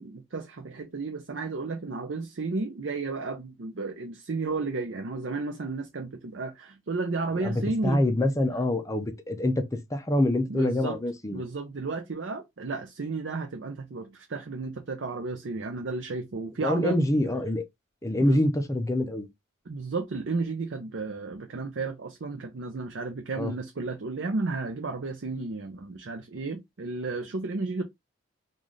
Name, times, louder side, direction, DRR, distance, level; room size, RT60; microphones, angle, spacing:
voice 1, 0.0-8.0 10.5-11.0 11.3-17.0 18.2-18.4 19.7-27.8, right 3 dB, 60° right, 0.6 m, -33 dB
voice 2, 7.4-11.4 16.6-17.6 18.0-19.3 23.3-23.5, left 1 dB, 15° left, 0.5 m, -26 dB
3.9 x 2.5 x 3.1 m
head